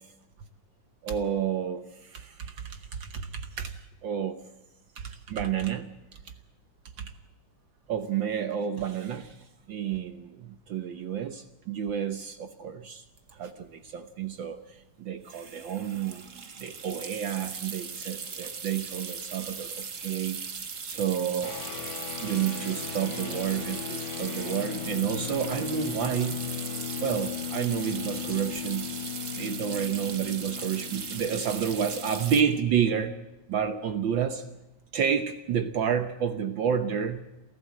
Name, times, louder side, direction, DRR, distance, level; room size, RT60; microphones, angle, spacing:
voice 1, 1.0-1.9 2.1-3.7 4.0-4.4 5.0-5.9 7.0-7.1 7.9-9.3 9.7-13.0 13.4-14.6 15.0-16.2 16.6-20.4 20.8-21.6 22.2-26.4 27.0-28.9 29.3-33.1 33.5-34.4 34.9-37.2, right 8 dB, 85° right, 8 dB, 1.0 m, -30 dB
sound 1, 13.3-13.4 13.6-13.9 15.2-32.4, right 5 dB, 70° right, 0.7 m, -39 dB
sound 2, 21.4-33.1, left 11 dB, 90° left, 3.4 m, -38 dB
28.0 x 14.5 x 7.7 m, 0.99 s
omnidirectional pair, 3.5 m